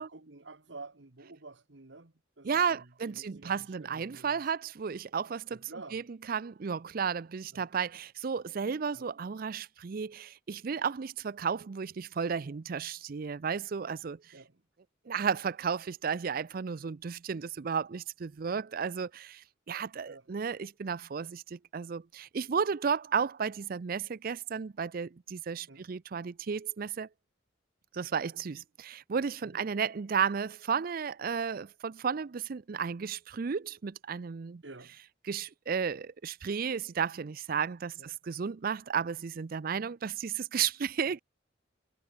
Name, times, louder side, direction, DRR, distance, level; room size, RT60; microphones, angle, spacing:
voice 1, 0.0-4.4 5.5-6.0 7.5-7.7 8.9-9.0 14.3-14.6 15.1-15.3 20.1-20.3 25.7-25.9 29.4-29.6 34.6-35.0 38.0-38.1, right 3 dB, 65° right, 1.6 m, -50 dB
voice 2, 2.4-6.0 6.3-14.2 15.1-27.1 27.9-34.6 35.3-41.2, right 6 dB, 50° right, 0.4 m, -33 dB
head